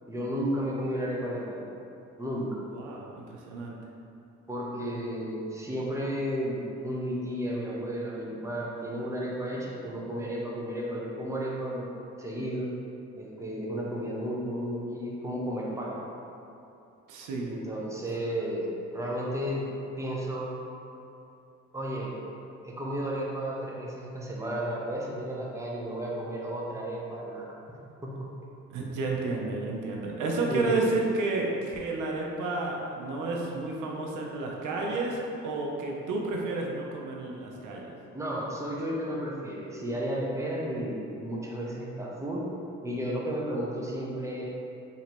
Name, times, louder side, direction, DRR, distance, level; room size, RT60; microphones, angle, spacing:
voice 1, 0.1-1.6 2.2-2.6 4.5-11.9 12.2-12.7 13.1-16.0 17.5-19.7 20.0-20.5 21.7-22.2 22.6-27.5 28.0-28.3 30.5-30.8 38.1-42.5 42.8-44.4, equal, 10° right, -4 dB, 0.7 m, -33 dB
voice 2, 2.7-3.8 17.1-17.6 28.7-38.0, right 2 dB, 85° right, -1 dB, 0.6 m, -31 dB
3.0 x 2.7 x 4.3 m, 2.8 s
cardioid pair, 90°, 30 cm